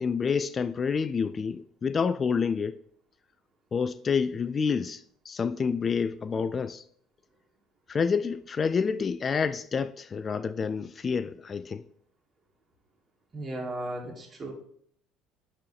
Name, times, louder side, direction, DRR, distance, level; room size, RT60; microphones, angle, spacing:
voice 1, 0.0-2.8 3.7-6.8 7.9-11.8, left 5 dB, 35° left, 0.3 m, -28 dB
voice 2, 13.3-14.5, right 1 dB, 30° right, 2.0 m, -35 dB
9.5 x 3.8 x 3.4 m
supercardioid pair, 85°, 0 cm